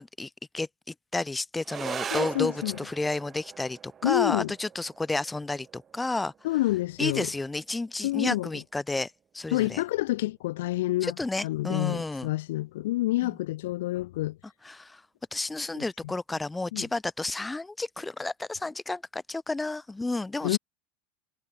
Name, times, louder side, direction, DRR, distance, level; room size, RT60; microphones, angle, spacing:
voice 1, 0.0-6.3 7.0-9.8 11.0-12.3 13.2-13.3 14.6-15.0 15.3-20.6, left 2 dB, 10° left, 1.0 m, -31 dB
sound 1, 1.6-10.6, right 7 dB, 30° right, 4.8 m, -42 dB
voice 2, 2.1-2.8 4.0-4.5 6.4-7.3 8.0-8.5 9.5-11.1 11.4-14.4 15.7-15.8 16.7-16.9 20.4-20.6, left 17 dB, 65° left, 1.0 m, -28 dB
figure-of-eight pair, 80°, 0 cm